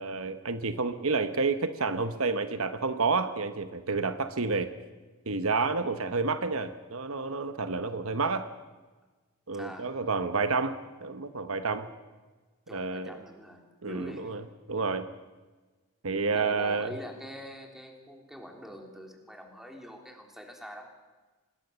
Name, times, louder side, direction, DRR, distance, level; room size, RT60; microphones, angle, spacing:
voice 1, 0.0-4.7 5.3-8.5 9.5-11.9 12.7-13.2 13.8-15.1 16.0-16.9, right 4 dB, 70° right, 10 dB, 1.2 m, -30 dB
voice 2, 9.5-9.9 12.7-14.3 16.0-20.9, equal, ahead, 2 dB, 3.6 m, -44 dB
26.0 x 20.5 x 7.0 m, 1.3 s
head